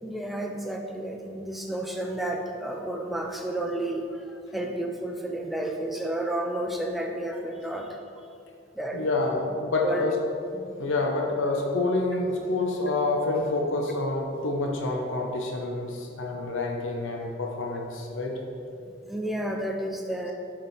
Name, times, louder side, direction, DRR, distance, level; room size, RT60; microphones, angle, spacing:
voice 1, 0.0-8.0 8.7-9.0 9.8-10.0 10.5-10.8 19.0-20.3, right 1 dB, ahead, 1 dB, 0.5 m, -31 dB
voice 2, 8.9-10.1 10.8-18.3, left 2 dB, 85° left, 0 dB, 0.9 m, -27 dB
7.5 x 5.2 x 4.2 m, 2.5 s
head